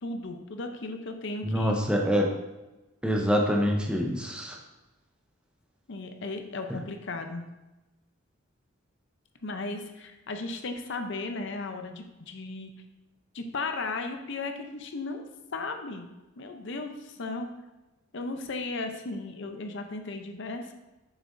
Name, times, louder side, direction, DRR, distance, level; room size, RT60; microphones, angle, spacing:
voice 1, 0.0-1.8 5.9-7.5 9.4-12.7 13.3-15.2 15.5-16.1 16.4-17.5 18.1-20.7, left 3 dB, 55° left, 6 dB, 0.6 m, -35 dB
voice 2, 1.4-2.3 3.0-4.6, equal, 5° right, 0 dB, 0.6 m, -25 dB
7.2 x 6.8 x 2.6 m, 1.0 s
head